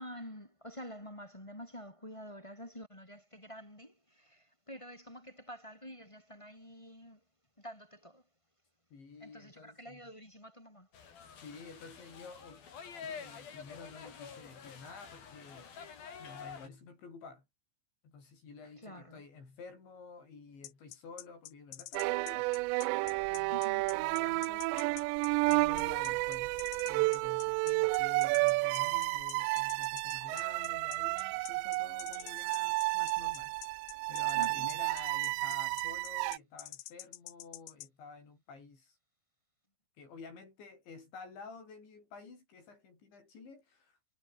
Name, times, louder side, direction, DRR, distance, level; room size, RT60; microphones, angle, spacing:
voice 1, 0.0-7.2 7.6-8.2 9.2-10.9 18.8-19.2 23.5-23.9 34.3-34.8, equal, 10° left, 2.5 m, -48 dB
voice 2, 8.9-10.0 11.4-12.7 13.0-15.7 16.2-17.5 18.0-22.5 23.3-24.9 25.4-33.8 34.1-39.0 40.0-44.0, left 4 dB, 70° left, 9.9 m, -51 dB
sound 1, 10.9-16.7, left 6 dB, 55° left, 5.6 m, -48 dB
sound 2, 20.6-37.9, left 16 dB, 85° left, 3.6 m, -48 dB
sound 3, 22.0-36.4, right 24 dB, 85° right, 2.6 m, -31 dB
omnidirectional pair, 5.4 m